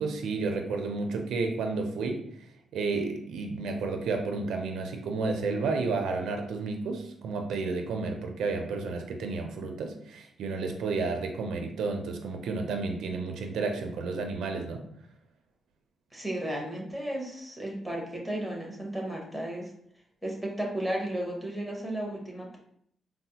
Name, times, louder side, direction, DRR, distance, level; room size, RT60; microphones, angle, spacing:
voice 1, 0.0-2.2 2.7-14.8, right 3 dB, 90° right, 3 dB, 0.5 m, -31 dB
voice 2, 16.1-19.7 20.2-22.6, right 1 dB, 5° left, -1 dB, 0.8 m, -34 dB
4.0 x 2.1 x 2.8 m, 0.69 s
cardioid pair, 125°, 0 cm